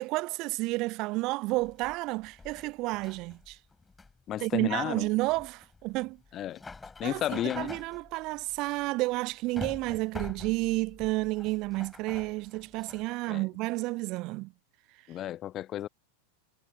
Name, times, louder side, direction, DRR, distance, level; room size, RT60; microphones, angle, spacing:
voice 1, 0.0-3.6 4.4-6.2 7.0-14.5, right 22 dB, 40° right, 0.5 m, -31 dB
sound 1, 1.5-13.1, left 4 dB, 10° left, 7.4 m, -46 dB
voice 2, 4.3-5.1 6.3-6.6 7.0-7.7 13.3-13.4 15.1-15.9, left 12 dB, 30° left, 0.8 m, -33 dB
figure-of-eight pair, 90°, 0 cm